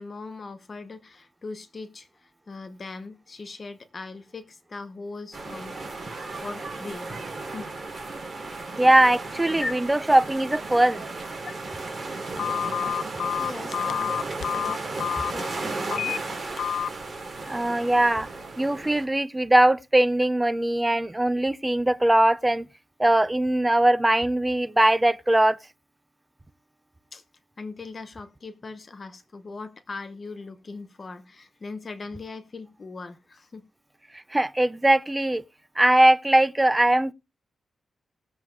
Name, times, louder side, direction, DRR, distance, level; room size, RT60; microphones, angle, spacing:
voice 1, 0.0-5.8 6.1-7.1 7.4-7.7 9.6-9.7 11.4-11.5 13.4-14.9 15.2-16.2 27.1-27.2 27.6-33.6, left 3 dB, 30° left, 0.9 m, -39 dB
sound 1, 5.3-19.1, right 3 dB, 25° right, 3.2 m, -35 dB
voice 2, 8.8-11.1 17.5-18.3 18.6-22.7 23.0-25.6 34.3-35.4 35.8-37.1, right 1 dB, 10° right, 0.4 m, -21 dB
Telephone, 12.4-15.3 15.9-16.2 16.6-16.9, left 9 dB, 75° left, 0.4 m, -28 dB
19.5 x 7.5 x 2.4 m
wide cardioid pair, 175°, 0 cm